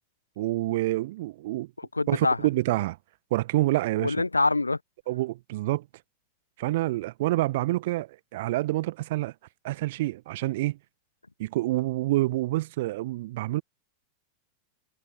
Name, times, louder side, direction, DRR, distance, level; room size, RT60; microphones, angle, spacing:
voice 1, 0.4-1.7 2.1-3.0 3.3-4.1 5.1-5.8 6.6-9.3 9.6-10.8 11.4-13.6, right 17 dB, 55° right, 1.5 m, -27 dB
voice 2, 1.8-2.4 4.0-4.8, left 3 dB, 80° left, 0.8 m, -25 dB
figure-of-eight pair, 90°, 0 cm